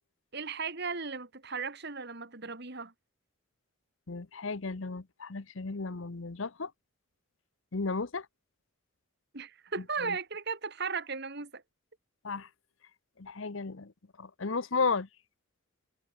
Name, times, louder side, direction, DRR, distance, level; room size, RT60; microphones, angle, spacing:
voice 1, 0.3-2.9 9.3-11.6, right 5 dB, 50° right, 2.4 m, -36 dB
voice 2, 4.1-6.7 7.7-8.3 10.1-10.2 12.2-12.5 13.2-13.9 14.2-15.1, left 4 dB, 65° left, 0.9 m, -34 dB
head